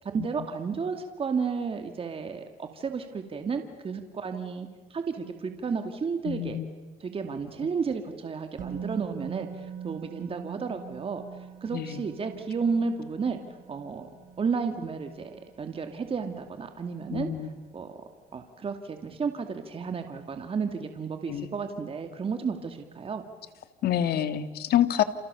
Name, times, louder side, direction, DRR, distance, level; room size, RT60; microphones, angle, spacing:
voice 1, 0.0-6.6 7.0-11.2 11.6-13.4 13.7-14.1 14.4-17.3 17.7-18.0 18.3-23.2, right 5 dB, 35° right, 6 dB, 2.4 m, -32 dB
voice 2, 6.2-6.7 7.6-7.7 11.7-12.1 17.1-17.5 21.3-21.5 23.8-25.0, left 11 dB, 65° left, 10 dB, 2.1 m, -27 dB
Musical instrument, 8.6-16.5 16.8-16.9, right 8 dB, 50° right, 5.2 m, -43 dB
29.5 x 29.0 x 7.0 m, 1.2 s
cardioid pair, 110°, 17 cm